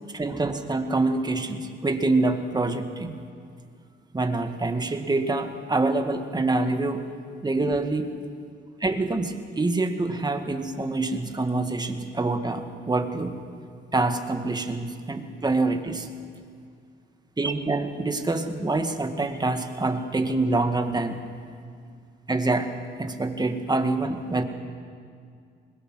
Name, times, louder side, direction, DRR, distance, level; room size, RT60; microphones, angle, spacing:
voice 1, 0.1-3.1 4.1-7.0 7.4-8.1 8.8-13.4 13.9-16.1 17.4-21.2 22.3-22.7 23.0-24.4, right 2 dB, 20° right, 6 dB, 1.8 m, -26 dB
21.5 x 21.0 x 6.3 m, 2.2 s
cardioid pair, 90°, 20 cm